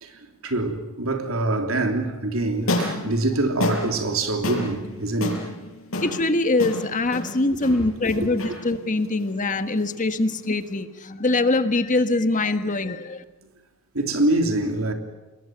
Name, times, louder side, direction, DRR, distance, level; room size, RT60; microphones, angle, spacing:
voice 1, 0.0-5.5 8.1-8.3 13.9-14.9, right 2 dB, 90° right, 3.3 m, -25 dB
sound 1, 2.5-10.8, left 1 dB, 80° left, 6.6 m, -31 dB
voice 2, 6.0-13.2, left 2 dB, 40° left, 1.5 m, -23 dB
27.5 x 21.5 x 9.0 m
head